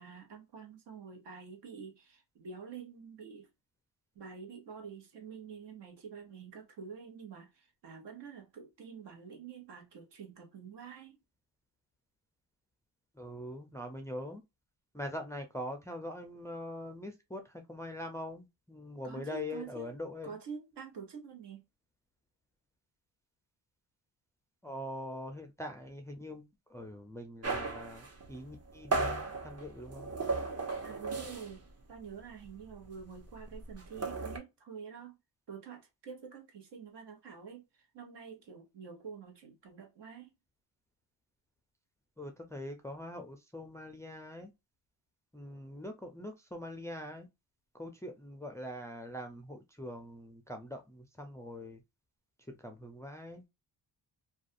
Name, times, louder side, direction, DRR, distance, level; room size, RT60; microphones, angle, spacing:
voice 1, 0.0-3.5 4.1-11.2 19.0-20.0 20.2-21.6 30.8-35.2 35.5-40.3, right 6 dB, 70° right, 1.1 m, -47 dB
voice 2, 13.1-14.4 14.9-20.3 24.6-26.4 26.7-30.1 42.2-44.5 45.3-47.3 47.7-51.8 52.5-53.4, left 1 dB, 5° left, 0.4 m, -43 dB
sound 1, 27.4-31.7 32.0-32.2 32.5-34.4, right 3 dB, 35° right, 0.8 m, -36 dB
2.4 x 2.3 x 2.5 m
cardioid pair, 85°, 44 cm